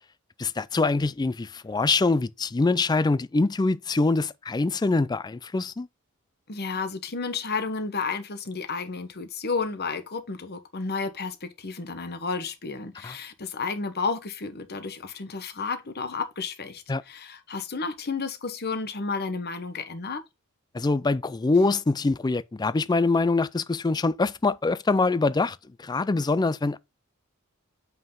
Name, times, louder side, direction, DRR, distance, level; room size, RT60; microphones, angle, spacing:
voice 1, 0.4-5.9 13.0-13.1 16.9-17.0 20.7-26.8, left 3 dB, 20° left, 0.3 m, -24 dB
voice 2, 6.5-20.2, left 4 dB, 45° left, 1.2 m, -32 dB
7.4 x 5.7 x 3.8 m
head